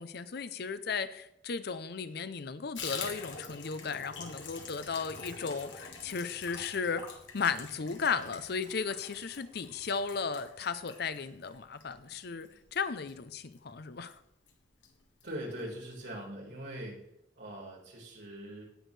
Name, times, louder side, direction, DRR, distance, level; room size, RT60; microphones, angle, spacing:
voice 1, 0.0-7.1 7.3-14.2, left 5 dB, 60° left, 13 dB, 0.6 m, -35 dB
Water tap faucet / Bathtub (filling or washing), 2.7-13.7 14.0-14.2 14.5-14.6 14.8-15.3 15.6-15.7 16.0-16.1, left 5 dB, 80° left, 1.9 m, -46 dB
voice 2, 15.2-17.0 17.4-18.6, right 1 dB, 70° right, -2 dB, 4.3 m, -42 dB
18.5 x 6.3 x 3.3 m, 0.81 s
head